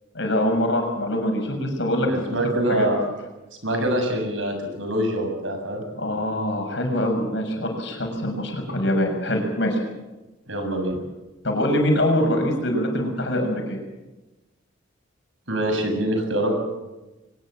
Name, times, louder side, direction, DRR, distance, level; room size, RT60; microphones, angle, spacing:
voice 1, 0.1-2.1 2.7-2.9 6.0-9.8 11.4-13.8, left 1 dB, 65° left, 3 dB, 6.6 m, -24 dB
voice 2, 2.1-3.0 3.6-5.8 10.5-11.0 15.5-16.5, right 1 dB, 75° right, 4 dB, 7.1 m, -24 dB
23.5 x 20.5 x 7.6 m, 1.1 s
head